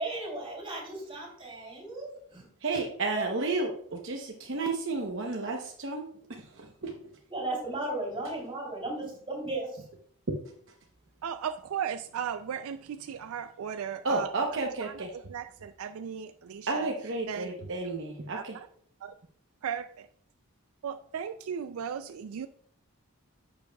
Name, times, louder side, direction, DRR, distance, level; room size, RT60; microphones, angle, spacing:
voice 1, 0.0-2.4 2.7-2.8 3.2-3.3 7.3-9.8, right 2 dB, 25° right, 3.0 m, -35 dB
voice 2, 2.6-6.9 10.3-10.4 14.0-15.1 16.7-18.6, right 3 dB, 55° right, 0.8 m, -32 dB
voice 3, 11.2-16.9 17.3-17.5 18.3-18.4 19.0-19.2 19.6-20.1 20.8-22.5, right 8 dB, 75° right, 0.3 m, -36 dB
10.5 x 7.0 x 2.3 m
head